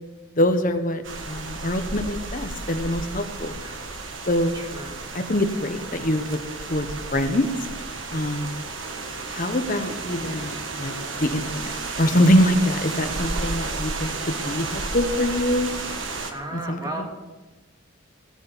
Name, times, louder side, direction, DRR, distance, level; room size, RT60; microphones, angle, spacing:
voice 1, 0.3-3.6 4.2-4.5 5.1-6.4 6.7-7.5 8.1-8.6 9.3-10.5 10.8-15.7 16.7-17.2, left 1 dB, 40° left, 7 dB, 1.2 m, -24 dB
sound 1, 1.0-16.3, right 3 dB, 65° right, 1.6 m, -32 dB
voice 2, 4.5-5.2 8.1-8.6 12.9-13.4 16.3-17.1, right 1 dB, 20° right, 2 dB, 2.1 m, -37 dB
17.0 x 7.0 x 7.3 m, 1.1 s
head